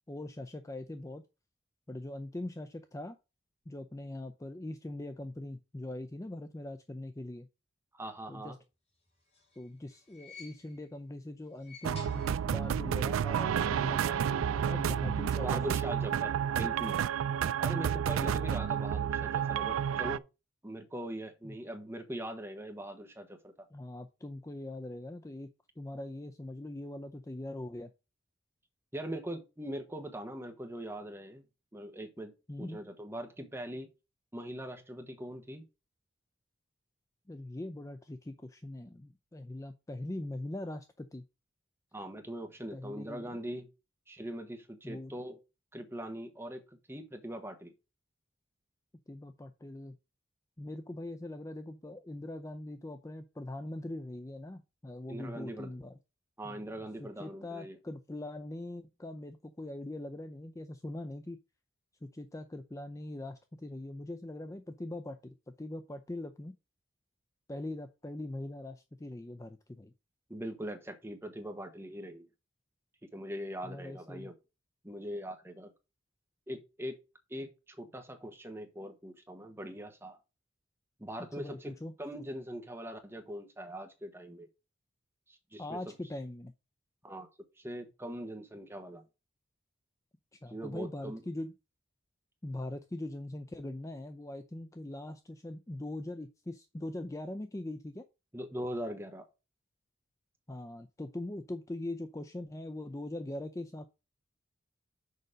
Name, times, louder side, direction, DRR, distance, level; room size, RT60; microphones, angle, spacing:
voice 1, 0.1-1.2 1.9-3.2 3.7-7.5 8.3-8.6 9.6-15.6 18.3-18.4 21.4-21.6 23.7-27.9 32.5-32.8 37.3-41.2 42.7-43.4 44.8-45.1 49.1-50.0 50.6-56.0 56.4-61.4 62.0-66.5 67.5-69.9 73.6-74.3 81.2-81.9 85.6-86.5 90.3-91.5 92.4-98.0 100.5-103.9, left 1 dB, 15° left, 0.4 m, -42 dB
voice 2, 7.9-8.6 15.4-17.0 17.6-20.2 20.6-23.5 28.9-31.4 31.7-32.3 32.6-33.9 34.3-35.6 41.9-43.7 44.1-45.4 45.7-46.6 46.9-47.7 55.1-55.7 56.4-57.8 70.3-72.3 73.0-74.3 74.8-75.7 76.5-77.0 77.3-80.2 81.0-84.5 85.3-85.8 87.0-87.3 87.6-89.0 90.5-91.2 98.3-99.2, right 1 dB, 10° right, 1.2 m, -41 dB
sound 1, 9.1-11.0 11.5-12.9 13.1-13.2 14.3-14.4, left 4 dB, 35° left, 4.0 m, -54 dB
sound 2, 11.8-20.2, right 8 dB, 90° right, 0.3 m, -30 dB
6.7 x 5.2 x 5.1 m
head